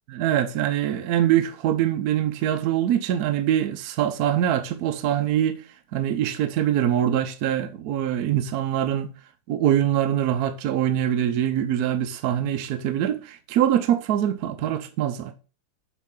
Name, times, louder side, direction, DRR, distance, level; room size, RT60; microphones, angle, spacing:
voice 1, 0.1-5.6 5.9-9.1 9.5-15.3, right 11 dB, 70° right, 0.9 m, -23 dB
7.3 x 4.1 x 3.6 m
omnidirectional pair, 2.1 m